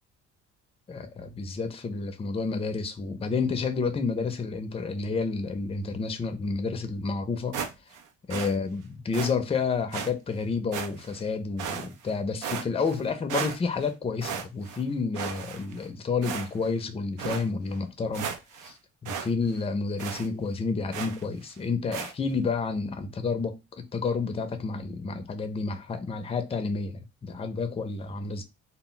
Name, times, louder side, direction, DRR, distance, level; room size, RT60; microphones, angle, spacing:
voice 1, 0.9-7.6 8.3-18.3 18.6-18.8 19.0-28.4, left 4 dB, 20° left, 0.4 m, -30 dB
sound 1, 7.5-8.0 8.3-8.5 9.1-9.3 9.9-10.1 10.7-11.2 11.6-12.1 12.4-13.0 13.3-13.9 14.2-14.8 15.1-15.8 16.2-16.7 17.2-17.4 17.8-17.9 18.1-18.7 19.1-19.3 19.5-19.6 20.0-20.3 20.9-21.2 21.9-22.1, right 7 dB, 85° right, 0.5 m, -35 dB
2.1 x 2.0 x 3.7 m
cardioid pair, 90°, 30 cm